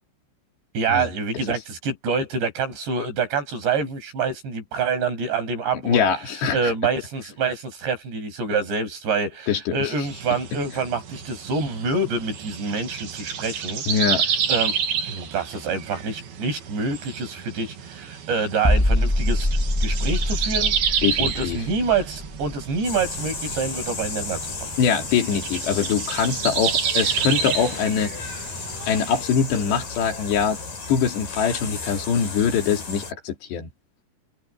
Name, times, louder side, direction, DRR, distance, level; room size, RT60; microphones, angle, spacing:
voice 1, 0.7-6.1 6.5-14.1 14.5-14.8 15.1-19.5 19.8-20.8 21.2-24.4, right 4 dB, 80° right, 8.9 m, -26 dB
voice 2, 5.8-6.7 9.5-9.9 13.9-14.2 21.0-21.6 24.8-28.3 28.9-30.6 30.9-33.7, left 7 dB, 75° left, 5.0 m, -23 dB
sound 1, 10.0-29.2, right 7 dB, 65° right, 4.2 m, -30 dB
sound 2, 18.6-24.3 24.6-24.8, left 1 dB, 30° left, 0.4 m, -25 dB
sound 3, 22.8-33.1, left 4 dB, 50° left, 8.4 m, -34 dB
open air
omnidirectional pair, 4.9 m